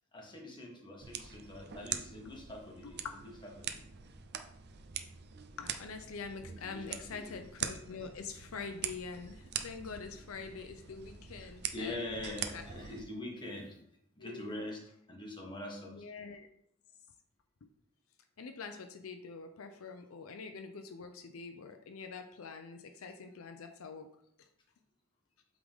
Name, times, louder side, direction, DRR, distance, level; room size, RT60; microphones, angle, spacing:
voice 1, 0.1-3.0 3.2-3.8 6.6-7.4 11.7-13.8 14.2-14.8 15.1-16.1, left 1 dB, 20° left, -1 dB, 1.4 m, -43 dB
sound 1, 1.0-13.0, right 8 dB, 50° right, 0.5 m, -43 dB
voice 2, 2.8-3.1 5.6-12.0 12.5-12.7 14.2-14.6 15.9-16.5 18.4-24.1 24.4-24.5, left 5 dB, 80° left, 6 dB, 0.6 m, -45 dB
8.2 x 3.8 x 3.6 m, 0.72 s
head